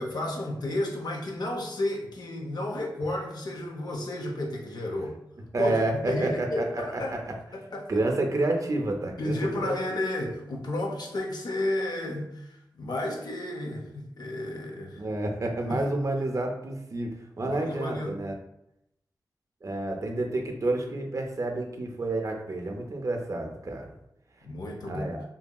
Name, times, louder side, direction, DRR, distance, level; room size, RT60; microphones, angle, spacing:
voice 1, 0.0-5.1 5.6-7.2 7.5-8.0 9.2-15.0 15.7-15.8 17.4-18.2 24.4-25.1, left 1 dB, 70° left, 1 dB, 0.6 m, -32 dB
voice 2, 5.5-7.2 7.9-9.7 15.0-18.3 19.6-23.9 24.9-25.2, right 2 dB, 45° right, 2 dB, 0.5 m, -29 dB
2.8 x 2.7 x 2.3 m, 0.80 s
wide cardioid pair, 80°, 7 cm